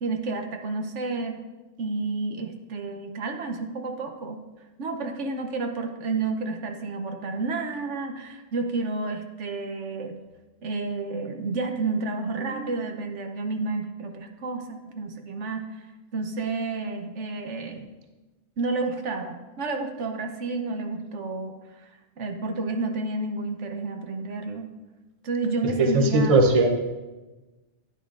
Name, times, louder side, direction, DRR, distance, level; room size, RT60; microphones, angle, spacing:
voice 1, 0.0-1.4 1.8-4.4 4.8-10.1 10.6-15.8 16.1-17.9 18.6-21.5 21.8-21.9 22.2-24.7 25.2-26.4, right 3 dB, 75° right, 4 dB, 1.2 m, -30 dB
voice 2, 25.6-26.8, right 2 dB, 35° right, 4 dB, 0.8 m, -19 dB
10.5 x 10.0 x 2.5 m, 1.2 s
omnidirectional pair, 1.2 m